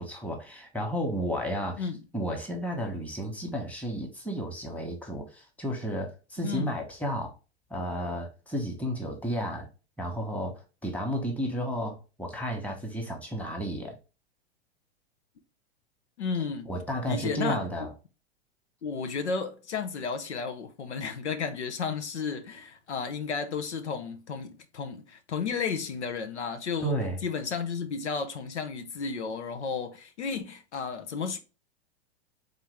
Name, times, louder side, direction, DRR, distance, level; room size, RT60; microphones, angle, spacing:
voice 1, 0.0-1.9 2.1-7.4 7.7-9.7 10.0-13.9 16.6-17.9 26.8-27.2, equal, 5° left, 1.4 m, -32 dB
voice 2, 6.4-6.7 16.2-16.7 17.1-17.6 18.8-26.9 27.2-31.4, left 5 dB, 80° left, 0.9 m, -33 dB
4.0 x 3.6 x 3.4 m
hypercardioid pair, 105°, 33 cm